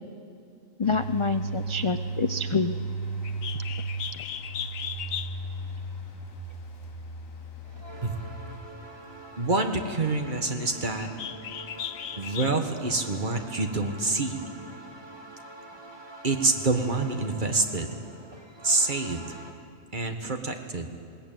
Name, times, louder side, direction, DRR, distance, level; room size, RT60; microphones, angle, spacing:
sound 1, 0.8-8.6, right 3 dB, 90° left, 3.7 m, -35 dB
voice 1, 0.8-2.8 4.1-4.2, left 4 dB, 50° left, 10 dB, 0.3 m, -27 dB
Bird, 3.2-12.8, left 9 dB, 70° left, 1.1 m, -39 dB
sound 2, 7.6-19.5, right 2 dB, 20° right, 1.9 m, -46 dB
voice 2, 9.4-11.1 12.1-14.4 16.2-18.0 18.6-19.3 19.9-20.9, right 3 dB, 40° right, 5 dB, 1.7 m, -27 dB
21.0 x 18.0 x 9.2 m, 2.5 s
omnidirectional pair, 1.4 m